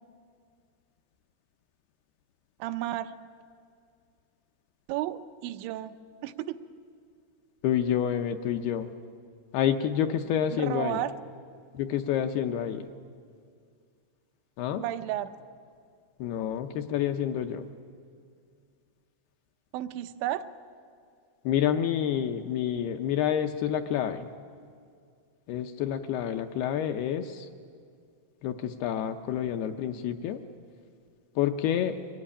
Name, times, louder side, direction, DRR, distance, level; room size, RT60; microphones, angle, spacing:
voice 1, 2.6-3.1 4.9-5.9 6.2-6.6 10.5-11.1 14.8-15.3 19.7-20.5, right 13 dB, 90° right, 9 dB, 3.2 m, -32 dB
voice 2, 7.6-8.9 9.5-11.0 11.7-12.9 14.6-14.8 16.2-17.7 21.5-24.3 25.5-27.5 28.4-30.4 31.4-32.0, left 9 dB, 75° left, 7 dB, 2.4 m, -28 dB
24.0 x 20.0 x 10.0 m, 2.2 s
omnidirectional pair, 5.1 m